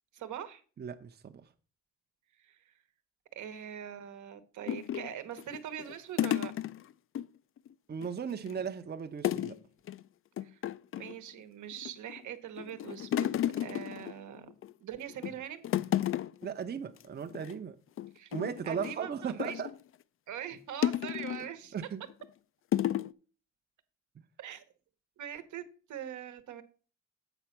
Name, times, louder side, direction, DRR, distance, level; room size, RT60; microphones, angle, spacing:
voice 1, 0.1-0.6 2.4-2.7 3.4-6.5 10.4-10.6 10.9-14.5 14.8-15.7 18.1-18.3 18.6-19.6 20.3-21.7 24.4-24.6 25.2-25.6 25.9-26.6, right 10 dB, 75° right, 1.1 m, -42 dB
voice 2, 0.8-1.3 7.9-9.6 16.4-17.8 18.3-19.7 21.7-22.0 24.2-24.3, right 7 dB, 35° right, 0.7 m, -37 dB
sound 1, 4.7-7.3 7.6-7.7 8.0-8.7 9.2-9.6 9.9-10.0 10.4-11.2 11.7-12.2 12.6-14.7 15.1-15.4 15.6-16.5 16.9-17.0 17.3-17.5 18.0-19.8 20.8-21.5 22.1-22.3 22.7-23.1, left 11 dB, 45° left, 0.4 m, -33 dB
8.0 x 4.1 x 5.9 m
cardioid pair, 90°, 30 cm